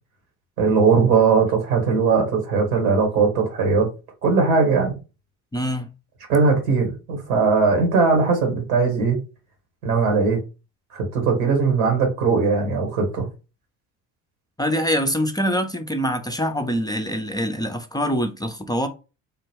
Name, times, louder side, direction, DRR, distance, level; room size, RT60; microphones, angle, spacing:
voice 1, 0.6-3.9 4.2-4.9 6.3-9.2 9.8-10.4 10.9-13.3, right 4 dB, 85° right, 1.5 m, -19 dB
voice 2, 5.5-5.9 14.6-18.9, equal, 10° left, 0.5 m, -24 dB
3.8 x 2.1 x 3.4 m
hypercardioid pair, 60°, 41 cm